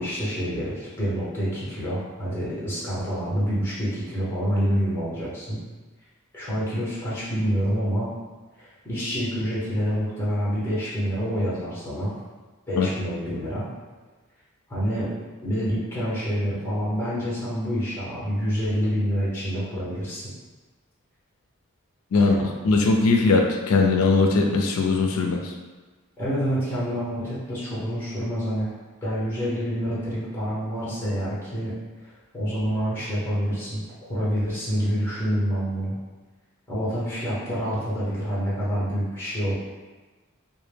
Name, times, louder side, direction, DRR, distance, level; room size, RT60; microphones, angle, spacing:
voice 1, 0.0-5.6 6.3-8.1 8.6-12.1 12.7-13.7 14.7-15.1 15.4-20.2 22.1-22.4 26.2-28.7 29.0-31.7 32.0-33.8 34.1-35.9 36.7-39.5, equal, 10° left, -9 dB, 0.8 m, -27 dB
voice 2, 22.6-25.5, left 3 dB, 75° left, 2 dB, 0.4 m, -20 dB
2.1 x 2.1 x 3.2 m, 1.3 s
head